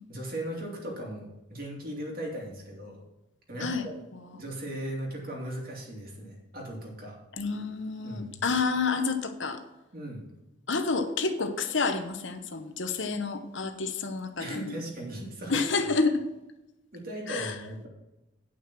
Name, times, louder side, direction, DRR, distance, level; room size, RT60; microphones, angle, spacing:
voice 1, 0.1-3.0 3.5-4.0 4.3-7.2 8.0-8.4 9.9-10.2 14.4-15.6 16.9-17.9, right 1 dB, 45° right, -1 dB, 2.6 m, -37 dB
voice 2, 4.1-4.4 7.4-9.6 10.7-14.8 15.5-16.2 17.3-17.5, left 4 dB, 65° left, 7 dB, 1.0 m, -29 dB
9.3 x 6.1 x 6.1 m, 0.97 s
head